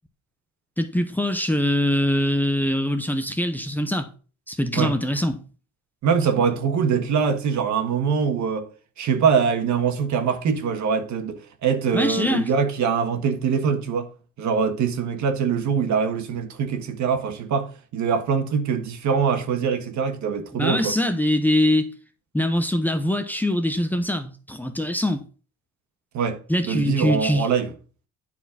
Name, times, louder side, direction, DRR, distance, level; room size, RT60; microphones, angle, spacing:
voice 1, 0.8-4.1 4.5-5.4 11.9-12.5 20.5-21.9 22.3-25.2 26.5-27.5, left 1 dB, 5° left, 0.8 m, -23 dB
voice 2, 6.0-8.7 9.0-14.1 14.4-20.9 26.1-27.7, right 6 dB, 70° right, 1.6 m, -23 dB
10.5 x 4.5 x 5.8 m
cardioid pair, 165°, 30 cm